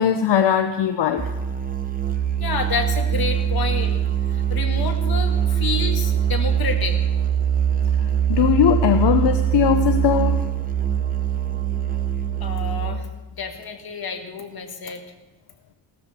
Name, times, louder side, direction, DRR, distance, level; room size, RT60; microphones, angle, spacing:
voice 1, 0.0-1.3 8.3-10.4, left 8 dB, 80° left, 7 dB, 0.9 m, -19 dB
Musical instrument, 1.2-13.2, right 9 dB, 20° right, 0.9 m, -22 dB
voice 2, 2.4-4.0 4.3-7.0 12.4-15.0, left 5 dB, 60° left, 4 dB, 2.0 m, -29 dB
17.0 x 14.0 x 4.5 m, 1.1 s
wide cardioid pair, 125°, 42 cm